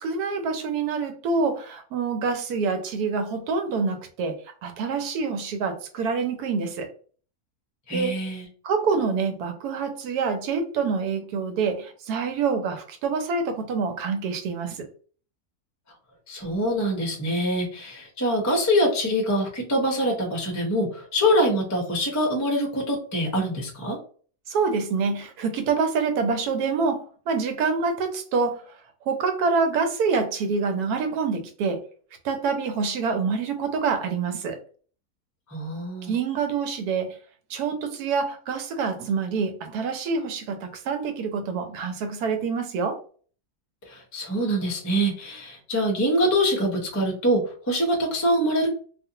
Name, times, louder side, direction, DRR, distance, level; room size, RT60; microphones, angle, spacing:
voice 1, 0.0-6.9 7.9-8.2 8.6-14.9 24.5-28.8 29.1-31.8 32.2-34.6 36.0-37.2 37.5-43.0, right 5 dB, 90° right, 1.1 m, -26 dB
voice 2, 7.9-8.4 16.3-24.0 35.5-36.1 43.9-48.7, equal, 20° left, 0.4 m, -24 dB
2.4 x 2.4 x 2.7 m
omnidirectional pair, 1.6 m